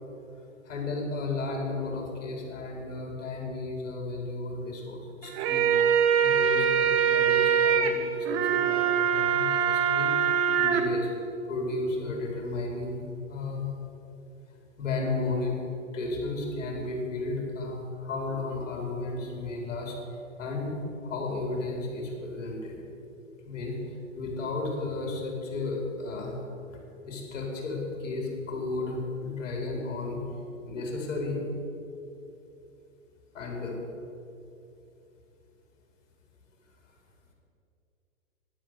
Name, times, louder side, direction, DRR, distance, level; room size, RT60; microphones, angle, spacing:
voice 1, 0.6-5.7 6.2-10.1 10.6-11.1 11.4-13.0 13.3-13.7 14.8-15.6 15.9-20.0 20.4-20.7 21.0-22.8 23.4-23.8 24.2-26.4 26.7-26.8 27.1-30.2 30.7-31.4 33.3-33.8, left 3 dB, 65° left, 0 dB, 4.6 m, -33 dB
sound 1, 5.2-10.8, right 7 dB, 35° right, 1.3 m, -23 dB
13.0 x 11.0 x 8.5 m, 2.8 s
figure-of-eight pair, 110°, 39 cm